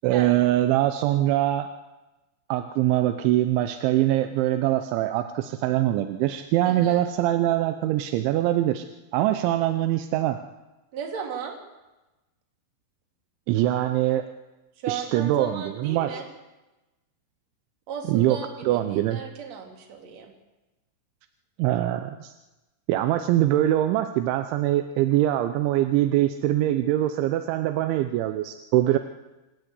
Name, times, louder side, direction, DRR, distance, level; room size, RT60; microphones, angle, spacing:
voice 1, 0.0-1.7 2.5-8.9 9.1-10.4 13.5-14.3 14.9-16.2 18.1-19.2 21.6-22.3 22.9-29.0, right 13 dB, 85° right, 8 dB, 3.2 m, -23 dB
voice 2, 6.6-7.0 10.9-11.6 14.8-16.2 17.9-20.3, right 7 dB, 40° right, 2 dB, 3.3 m, -36 dB
27.0 x 13.5 x 8.3 m, 1.1 s
omnidirectional pair, 5.3 m